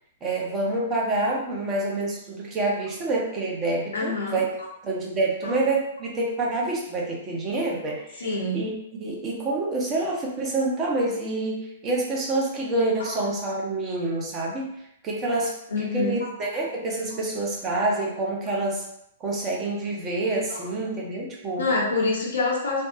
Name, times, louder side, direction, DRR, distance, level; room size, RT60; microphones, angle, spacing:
voice 1, 0.2-4.5 4.8-8.3 8.5-14.7 15.0-15.5 15.8-18.8 19.2-21.6, right 2 dB, 25° right, -3 dB, 0.7 m, -27 dB
voice 2, 3.9-4.7 5.4-5.6 8.2-8.6 13.0-13.1 15.7-16.3 20.5-20.6 21.6-22.8, left 3 dB, 65° left, -3 dB, 0.8 m, -26 dB
3.4 x 2.1 x 2.6 m, 0.76 s
figure-of-eight pair, 105°, 0 cm